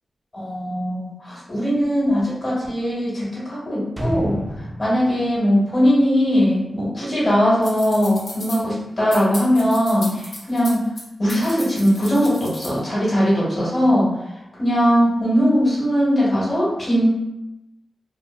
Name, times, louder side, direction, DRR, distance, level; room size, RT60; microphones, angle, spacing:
voice 1, 0.3-10.9 11.2-14.1 14.6-17.1, equal, 40° left, -8 dB, 1.4 m, -20 dB
sound 1, 4.0-6.8 7.1-7.2, equal, 10° right, 0.6 m, -31 dB
sound 2, 7.6-8.6 9.1-11.0 11.3-12.8, left 1 dB, 70° left, 0.9 m, -35 dB
2.9 x 2.4 x 2.4 m, 0.94 s
cardioid pair, 65°, 0 cm